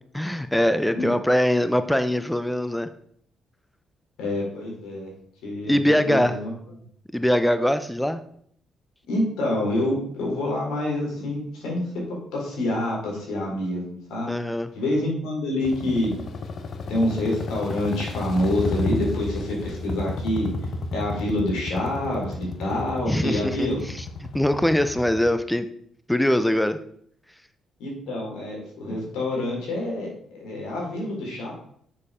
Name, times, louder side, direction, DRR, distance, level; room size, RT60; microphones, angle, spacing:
voice 1, 0.1-2.9 5.7-6.4 7.1-8.2 14.3-14.7 23.1-25.7 26.1-26.8, left 1 dB, 5° left, 10 dB, 0.6 m, -22 dB
voice 2, 4.2-5.1 5.4-6.5 9.1-14.3 14.8-16.1 16.9-20.5 20.9-23.8 27.8-31.5, left 1 dB, 85° left, -2 dB, 4.0 m, -27 dB
sound 1, 15.6-25.3, left 3 dB, 55° left, 1.1 m, -32 dB
7.3 x 6.6 x 5.0 m, 0.64 s
cardioid pair, 90°, 0 cm